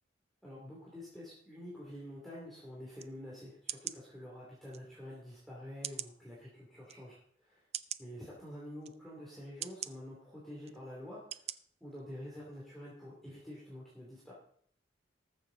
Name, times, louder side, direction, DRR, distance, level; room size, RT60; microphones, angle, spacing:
voice 1, 0.4-7.6 8.0-11.4 11.8-14.3, left 1 dB, ahead, -7 dB, 2.6 m, -48 dB
sound 1, 3.0-3.1 3.7-4.0 4.7-4.8 5.8-6.2 6.9-7.0 7.7-8.0 8.8-8.9 9.6-9.9 10.6-10.8 11.3-11.6 12.0-12.1, right 11 dB, 35° right, 0.4 m, -40 dB
19.5 x 6.9 x 3.8 m, 0.63 s
head